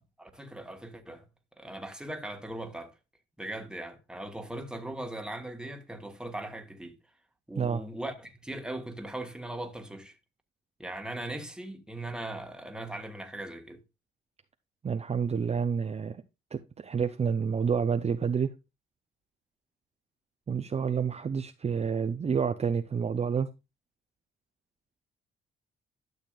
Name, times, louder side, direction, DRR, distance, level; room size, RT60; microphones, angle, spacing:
voice 1, 0.2-1.3 1.6-2.9 3.4-7.0 7.5-10.1 10.8-13.8, right 1 dB, 5° right, 1.6 m, -39 dB
voice 2, 14.8-16.2 16.5-18.5 20.5-23.5, right 6 dB, 30° right, 0.7 m, -29 dB
12.0 x 6.6 x 2.4 m
cardioid pair, 90°, 20 cm